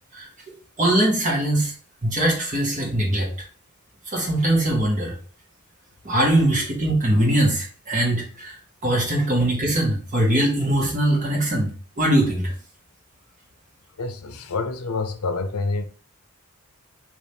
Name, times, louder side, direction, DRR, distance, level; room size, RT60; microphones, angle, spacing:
voice 1, 0.8-1.7 2.0-3.3 4.1-5.1 6.0-8.6 8.8-12.5, right 1 dB, 35° right, 1.4 m, -21 dB
voice 2, 14.0-15.8, left 3 dB, 75° left, 0.6 m, -27 dB
3.4 x 3.0 x 4.3 m
head